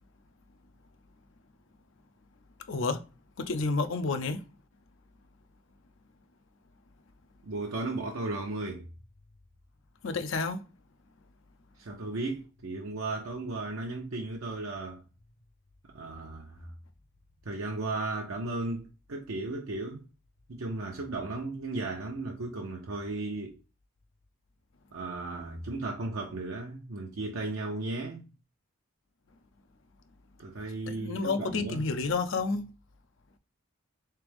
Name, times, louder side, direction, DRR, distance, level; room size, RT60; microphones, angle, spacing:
voice 1, 2.7-3.0 3.4-4.4 10.0-10.6 30.9-32.7, left 3 dB, 65° left, 0.5 m, -30 dB
voice 2, 7.4-8.9 11.8-15.0 15.9-16.7 17.5-20.0 20.5-23.6 24.9-28.2 30.4-31.9, right 2 dB, 80° right, 0.7 m, -35 dB
3.4 x 3.3 x 3.4 m
head